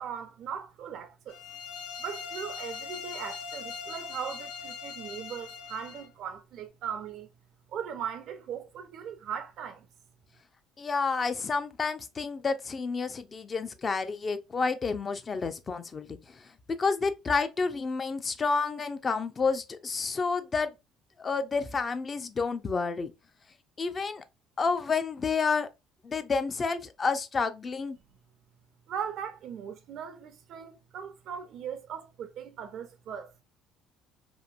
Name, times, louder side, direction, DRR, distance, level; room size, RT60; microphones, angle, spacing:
voice 1, 0.0-1.4 2.0-7.3 7.7-9.9 28.9-33.3, right 8 dB, 65° right, 0.4 m, -39 dB
sound 1, 1.3-6.1, left 5 dB, 80° left, 0.6 m, -41 dB
voice 2, 10.8-16.5 16.8-20.7 21.2-23.1 23.8-24.2 24.6-25.7 26.0-28.0, left 4 dB, 30° left, 0.4 m, -30 dB
2.9 x 2.5 x 2.4 m
cardioid pair, 100°, 0 cm